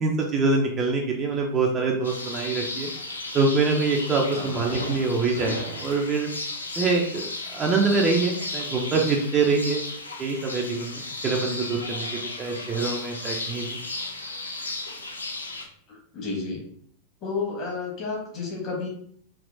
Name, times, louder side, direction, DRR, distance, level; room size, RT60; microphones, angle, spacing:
voice 1, 0.0-2.9 3.3-6.3 6.8-7.2 7.5-9.9 10.2-13.6, right 4 dB, 25° right, 0 dB, 0.5 m, -25 dB
sound 1, 2.0-15.6, left 2 dB, 80° left, 0.5 m, -34 dB
voice 2, 4.3-4.8 15.6-16.6 17.2-18.9, left 4 dB, 35° left, -2 dB, 1.3 m, -32 dB
3.4 x 2.8 x 2.6 m, 0.62 s
figure-of-eight pair, 90°, 0 cm